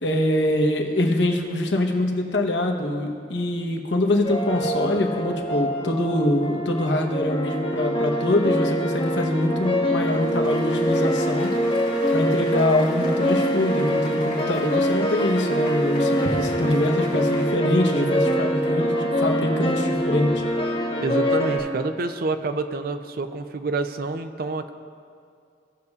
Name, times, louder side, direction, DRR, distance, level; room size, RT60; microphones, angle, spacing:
voice 1, 0.0-11.5 12.1-20.4, left 1 dB, 85° left, 2 dB, 1.0 m, -24 dB
sound 1, 4.2-21.6, equal, 30° left, 0.9 m, -24 dB
sound 2, 9.8-17.6, left 3 dB, 50° left, 1.8 m, -41 dB
voice 2, 21.0-24.7, right 3 dB, 55° right, 9 dB, 0.5 m, -28 dB
17.0 x 6.5 x 2.4 m, 2.4 s
head